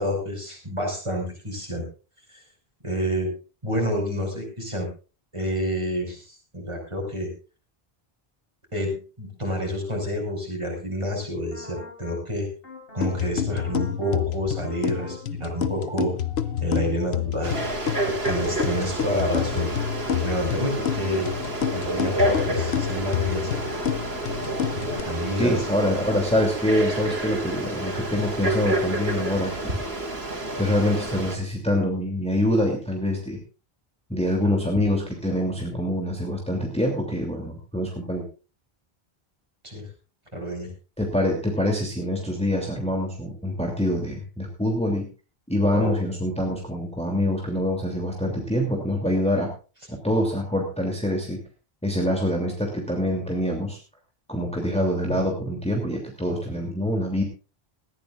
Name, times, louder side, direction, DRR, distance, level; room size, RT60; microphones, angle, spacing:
voice 1, 0.0-1.8 2.3-2.4 2.8-3.3 3.6-4.9 5.3-7.3 8.7-12.5 12.9-16.2 16.6-17.6 18.1-19.7 20.2-21.3 21.7-23.6 24.7-26.0 34.4-34.5 39.6-39.9 40.3-40.7 45.7-46.0, equal, 30° right, 1 dB, 5.8 m, -28 dB
sound 1, 11.5-12.2 12.6-13.2 13.5-14.2 14.6-15.2 15.5-22.6 23.0-26.2 26.6-27.2, left 3 dB, 70° left, 7.5 m, -43 dB
sound 2, 13.0-25.0, left 9 dB, 85° left, 1.0 m, -29 dB
Frog, 17.4-31.4, right 1 dB, 85° right, 3.0 m, -29 dB
voice 2, 25.4-29.7 30.6-33.4 34.1-38.2 41.0-45.1 45.5-49.5 49.9-51.4 51.8-53.8 54.3-57.2, left 1 dB, 5° left, 1 dB, 2.8 m, -25 dB
19.5 x 14.5 x 2.5 m, 0.34 s
omnidirectional pair, 1.0 m